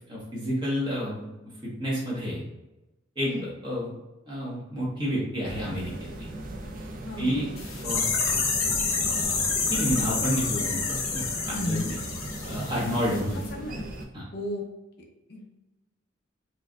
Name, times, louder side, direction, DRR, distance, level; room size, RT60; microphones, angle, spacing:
voice 1, 0.1-1.3 1.8-2.4 3.2-3.3 3.6-3.9 4.3-5.9 6.2-6.3 7.2-7.4 7.8-8.1 8.9-9.4 9.7-11.8 12.5-13.4 14.1-14.2, equal, 25° right, -6 dB, 1.1 m, -29 dB
sound 1, 5.4-14.1, right 1 dB, 40° right, 0.4 m, -38 dB
voice 2, 7.1-7.4 11.5-12.0 13.3-13.9 14.3-14.6 15.3-15.5, left 1 dB, 50° left, 0 dB, 0.6 m, -34 dB
sound 2, 7.6-13.2 13.5-13.6, left 4 dB, 90° left, 0.7 m, -28 dB
4.3 x 2.6 x 2.3 m, 1.0 s
head